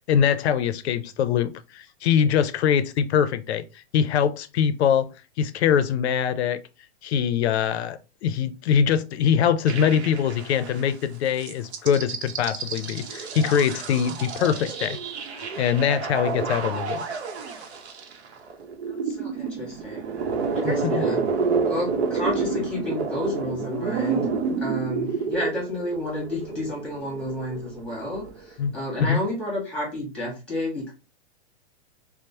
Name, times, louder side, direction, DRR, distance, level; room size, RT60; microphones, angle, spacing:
voice 1, 0.1-3.6 3.9-5.1 5.4-6.6 7.0-15.0 15.6-17.1 20.6-21.0 28.6-28.7 29.0-29.2, left 8 dB, 80° left, 0.5 m, -23 dB
sound 1, 9.7-10.9 11.4-28.5, right 5 dB, 80° right, 0.7 m, -29 dB
voice 2, 18.9-20.0 20.5-21.2 21.7-24.2 24.6-30.9, left 1 dB, 5° left, 1.2 m, -31 dB
3.0 x 2.0 x 2.7 m
hypercardioid pair, 150°, 32 cm